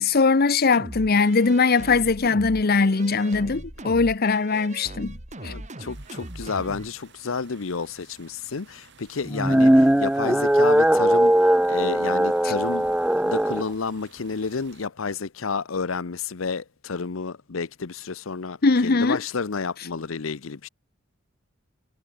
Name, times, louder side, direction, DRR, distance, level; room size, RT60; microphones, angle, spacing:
voice 1, 0.0-5.1 5.4-5.5 18.6-19.2, left 4 dB, 50° left, 0.8 m, -20 dB
sound 1, 0.7-6.9, right 1 dB, 35° right, 2.7 m, -39 dB
voice 2, 5.4-20.7, left 5 dB, 85° left, 0.8 m, -31 dB
sound 2, 5.9-14.9, right 5 dB, 60° right, 4.2 m, -54 dB
sound 3, 9.3-13.6, right 1 dB, 5° right, 0.4 m, -19 dB
head